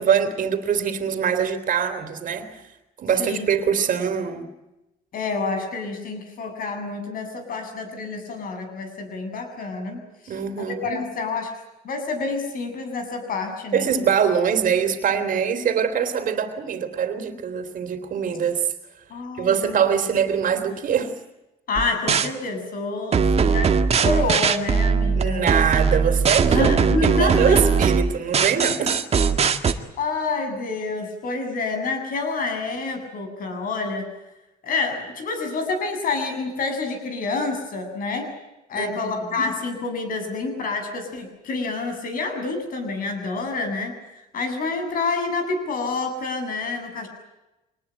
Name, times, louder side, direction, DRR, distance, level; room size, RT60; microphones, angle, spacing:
voice 1, 0.0-2.6 3.0-4.5 10.3-11.0 13.7-18.6 19.4-21.1 23.4-23.6 25.2-26.7 27.2-29.0 29.4-29.5 38.8-39.5, right 7 dB, 55° right, 7 dB, 3.3 m, -23 dB
voice 2, 5.1-11.5 11.8-13.9 19.1-19.8 21.7-23.7 24.0-25.5 26.5-27.6 30.0-34.1 34.6-38.3 38.7-47.1, left 3 dB, 55° left, 6 dB, 7.6 m, -28 dB
sound 1, 21.8-22.3 23.1-29.7, right 5 dB, 40° right, 1.8 m, -20 dB
25.0 x 20.0 x 9.2 m, 0.97 s
cardioid pair, 110°, 17 cm